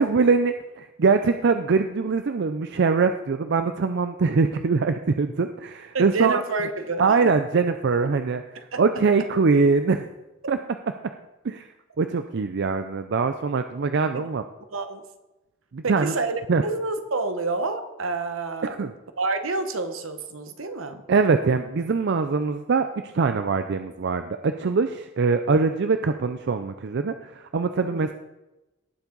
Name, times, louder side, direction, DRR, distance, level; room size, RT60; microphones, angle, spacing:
voice 1, 0.0-6.4 7.0-8.4 8.8-10.1 10.5-10.6 11.4-11.7 12.0-14.4 15.7-16.1 16.5-16.6 18.6-18.9 21.1-28.1, right 4 dB, 55° right, 8 dB, 0.5 m, -23 dB
voice 2, 5.9-7.0 8.7-8.8 14.1-14.3 14.7-15.0 15.8-18.7 19.2-21.0 27.9-28.1, right 3 dB, 80° right, 9 dB, 1.1 m, -28 dB
18.0 x 7.2 x 3.9 m, 1.0 s
head